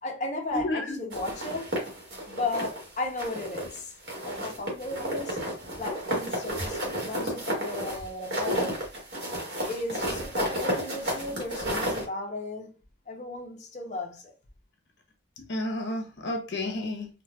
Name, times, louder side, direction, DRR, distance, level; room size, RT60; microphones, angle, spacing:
voice 1, 0.0-1.7 2.3-3.9 4.2-5.4 5.8-8.7 9.6-12.8 13.1-14.3, left 2 dB, 40° left, 0.7 m, -35 dB
voice 2, 0.5-1.0 15.4-17.1, left 1 dB, 65° left, 0.8 m, -31 dB
sound 1, 1.1-2.8 3.2-3.8 4.1-12.0, equal, 55° right, 1.1 m, -32 dB
4.0 x 2.2 x 2.2 m
head